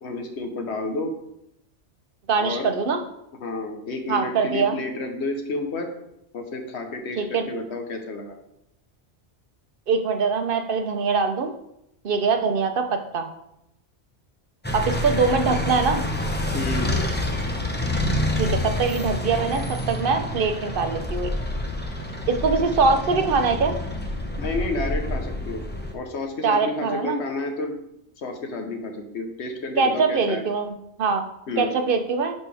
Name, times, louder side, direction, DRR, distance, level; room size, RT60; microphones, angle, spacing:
voice 1, 0.0-1.1 2.4-2.7 3.4-5.9 6.3-8.4 16.5-16.9 24.4-25.6 25.9-27.7 28.2-30.4 31.5-31.8, left 2 dB, 75° left, 5 dB, 1.2 m, -30 dB
voice 2, 2.3-3.0 4.1-4.8 7.2-7.4 9.9-11.5 12.0-13.3 14.7-16.0 18.3-21.4 22.3-23.8 26.4-27.2 29.8-30.7 31.0-31.2 31.6-32.3, right 4 dB, 55° right, 6 dB, 0.9 m, -23 dB
sound 1, 14.6-25.9, left 1 dB, 10° left, 0.6 m, -27 dB
10.5 x 4.4 x 3.4 m, 0.81 s
omnidirectional pair, 1.2 m